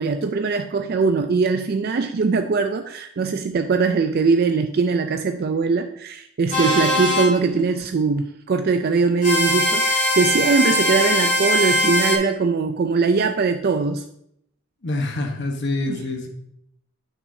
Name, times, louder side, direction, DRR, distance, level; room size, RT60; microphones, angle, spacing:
voice 1, 0.0-14.1 15.9-16.0, right 4 dB, 45° right, 7 dB, 0.4 m, -21 dB
sound 1, 6.5-7.3 9.2-12.2, left 1 dB, 35° left, 2.0 m, -20 dB
voice 2, 14.8-16.3, left 2 dB, 55° left, 3 dB, 1.0 m, -26 dB
9.4 x 6.0 x 2.7 m, 0.73 s
head